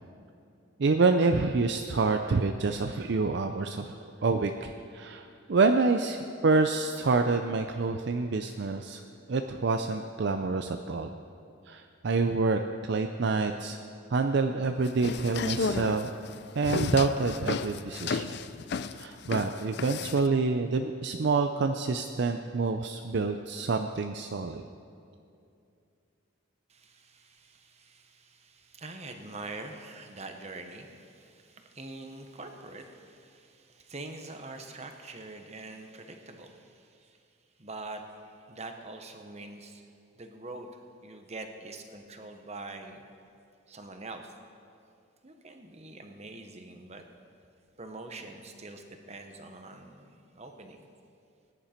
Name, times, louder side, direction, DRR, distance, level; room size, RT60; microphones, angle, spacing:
voice 1, 0.8-9.0 9.3-11.1 11.7-13.8 14.1-16.2 16.6-18.4 19.0-24.6, right 3 dB, 55° right, 6 dB, 0.5 m, -27 dB
sound 1, 14.9-20.3, left 4 dB, 55° left, 0.4 m, -32 dB
voice 2, 26.7-37.2 37.6-39.9 40.2-43.0 43.7-44.3 45.2-47.0 47.8-50.8, right 2 dB, 30° right, 5 dB, 1.1 m, -44 dB
18.5 x 10.0 x 4.4 m, 2.5 s
head